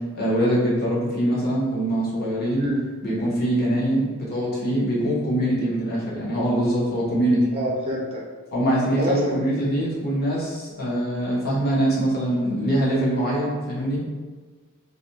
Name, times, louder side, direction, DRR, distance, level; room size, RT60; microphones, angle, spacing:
voice 1, 0.1-2.7 3.0-7.5 8.5-14.0, right 1 dB, 45° left, -6 dB, 0.8 m, -23 dB
voice 2, 7.5-8.2 9.0-9.7, right 1 dB, 25° right, -2 dB, 0.3 m, -27 dB
2.4 x 2.2 x 2.7 m, 1.4 s
head